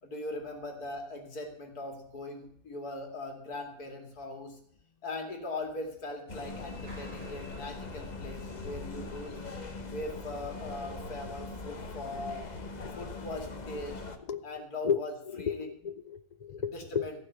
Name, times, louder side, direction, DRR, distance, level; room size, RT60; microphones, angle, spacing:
voice 1, 0.0-4.6 5.0-9.4 9.8-12.5 12.9-14.0 14.4-15.1 15.4-15.7 16.7-17.1, left 2 dB, 85° left, 3 dB, 2.8 m, -40 dB
sound 1, 6.3-14.2, left 3 dB, 30° left, 1.1 m, -41 dB
Clapping, 6.9-8.6, right 1 dB, 30° right, 6.0 m, -55 dB
voice 2, 14.8-17.1, left 7 dB, 55° left, 13 dB, 0.4 m, -33 dB
15.5 x 6.0 x 7.9 m, 0.69 s
omnidirectional pair, 1.6 m